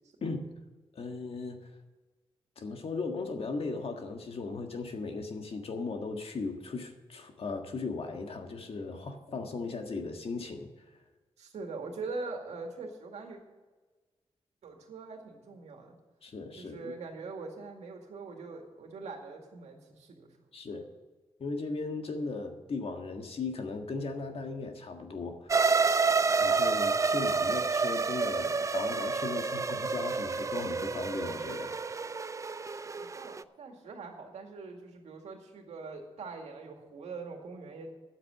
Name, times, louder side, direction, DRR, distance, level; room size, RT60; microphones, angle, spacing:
voice 1, 0.9-1.7 2.6-10.7 16.2-16.9 20.5-20.9 21.4-25.5 26.4-31.8, left 3 dB, 60° left, 5 dB, 1.6 m, -37 dB
voice 2, 11.4-13.4 14.6-15.9 16.6-20.3 20.7-20.8 27.4-27.6 33.0-37.9, right 3 dB, 90° right, 2 dB, 2.1 m, -42 dB
sound 1, 25.5-33.4, right 4 dB, 30° right, 0.4 m, -29 dB
9.7 x 7.9 x 7.7 m, 1.3 s
cardioid pair, 80°, 11 cm